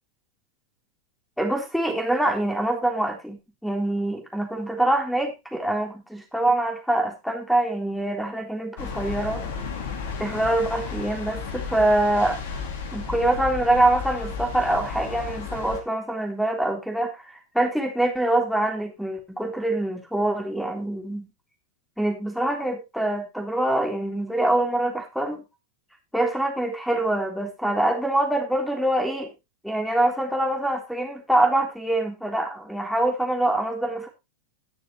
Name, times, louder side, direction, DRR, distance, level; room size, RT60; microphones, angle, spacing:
voice 1, 1.4-9.4 10.2-12.4 12.9-21.3 22.0-25.4 26.1-29.3 29.6-34.1, right 1 dB, ahead, 3 dB, 3.5 m, -24 dB
sound 1, 8.8-15.8, left 5 dB, 55° left, 2.4 m, -33 dB
18.5 x 6.8 x 3.1 m, 0.24 s
figure-of-eight pair, 90°, 0 cm